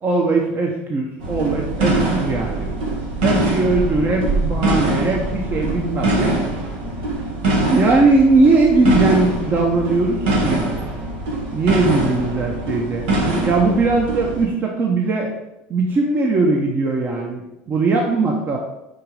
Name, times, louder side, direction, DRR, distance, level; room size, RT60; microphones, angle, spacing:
voice 1, 0.0-2.8 3.2-6.3 7.7-10.7 11.5-13.0 13.4-15.3 15.7-18.6, right 3 dB, 35° right, 0 dB, 0.9 m, -19 dB
sound 1, 1.2-14.4, right 2 dB, 85° right, 1.5 m, -23 dB
5.2 x 4.4 x 4.9 m, 0.92 s
supercardioid pair, 100°, 5 cm